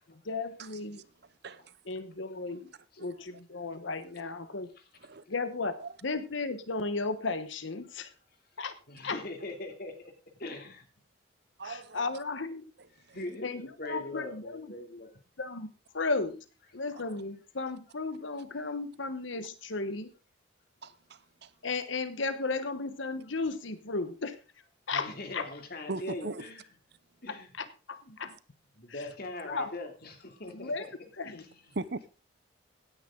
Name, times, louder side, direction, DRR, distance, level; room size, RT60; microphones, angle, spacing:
voice 1, 0.1-1.0 1.9-2.7 3.0-4.7 5.3-5.7 6.0-8.1 8.6-8.7 9.0-9.2 11.6-12.7 13.4-14.7 15.4-15.7 15.9-16.4 16.7-20.1 21.6-24.4 24.9-25.5 27.3-28.3 28.9-29.1 29.4-29.7 30.5-30.9 31.2-31.4, left 3 dB, 70° left, 1.1 m, -35 dB
voice 2, 8.9-10.8 13.1-15.1 24.9-26.7 27.2-27.5 28.1-28.2 28.7-30.9 31.2-31.6, left 2 dB, 50° left, 2.9 m, -41 dB
voice 3, 11.6-12.0 13.1-13.2 20.8-21.5 25.9-26.4 31.8-32.1, right 3 dB, 55° right, 0.8 m, -38 dB
16.5 x 10.0 x 3.8 m
head